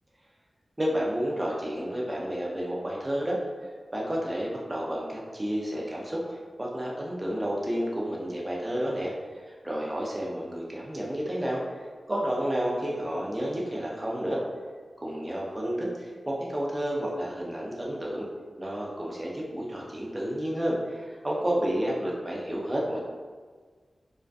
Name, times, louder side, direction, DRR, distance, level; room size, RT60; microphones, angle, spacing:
voice 1, 0.8-3.4 3.9-9.1 9.5-11.6 12.1-14.4 15.0-18.3 18.6-23.0, equal, 25° right, -3 dB, 0.6 m, -30 dB
2.3 x 2.2 x 2.5 m, 1.5 s
cardioid pair, 55°, 0 cm